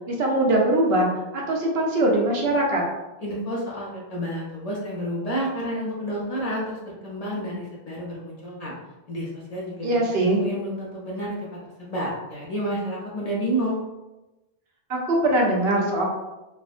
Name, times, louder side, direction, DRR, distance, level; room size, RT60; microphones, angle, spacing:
voice 1, 0.1-1.1 1.3-2.8 9.8-10.4 14.9-16.0, right 1 dB, 75° right, -1 dB, 0.9 m, -21 dB
voice 2, 3.2-8.7 9.1-11.4 11.8-13.8, equal, 45° left, -5 dB, 0.6 m, -30 dB
3.4 x 2.1 x 2.4 m, 1.0 s
omnidirectional pair, 1.1 m